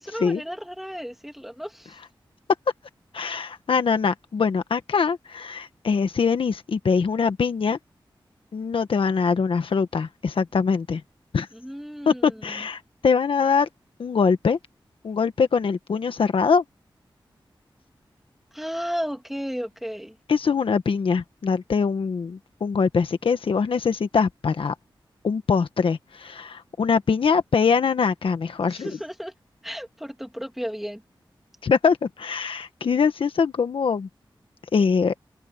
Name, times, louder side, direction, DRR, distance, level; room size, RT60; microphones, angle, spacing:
voice 1, 0.1-2.0 11.5-12.6 18.5-20.2 28.7-29.3 29.6-31.0, equal, 5° right, 3.0 m, -33 dB
voice 2, 3.1-7.8 8.5-11.0 11.3-11.5 12.0-13.7 14.0-14.6 15.0-16.6 20.3-24.7 25.2-28.9 31.6-34.1 34.7-35.1, left 5 dB, 85° left, 1.5 m, -23 dB
wide cardioid pair, 75°, 9 cm